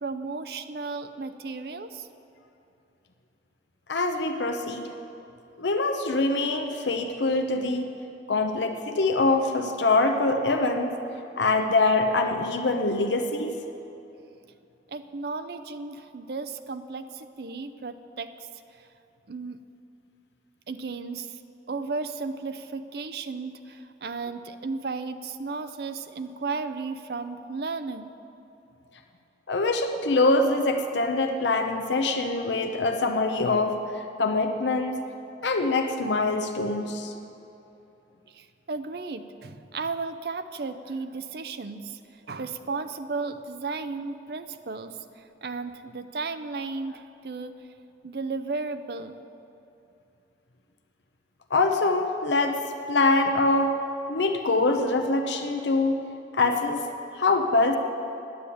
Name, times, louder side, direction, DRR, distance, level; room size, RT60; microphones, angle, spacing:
voice 1, 0.0-2.1 14.9-18.3 18.8-18.9 19.3-19.6 20.7-21.4 21.7-28.1 38.3-42.0 42.3-47.5 48.0-49.2, right 4 dB, 60° right, 9 dB, 0.5 m, -34 dB
voice 2, 3.9-4.9 5.6-7.9 8.3-10.9 11.4-13.5 29.5-35.0 35.4-37.1 51.5-52.6 52.9-53.8 54.1-56.0 56.3-56.8 57.1-57.8, left 2 dB, 80° left, 5 dB, 0.8 m, -24 dB
9.9 x 9.5 x 8.4 m, 2.8 s
head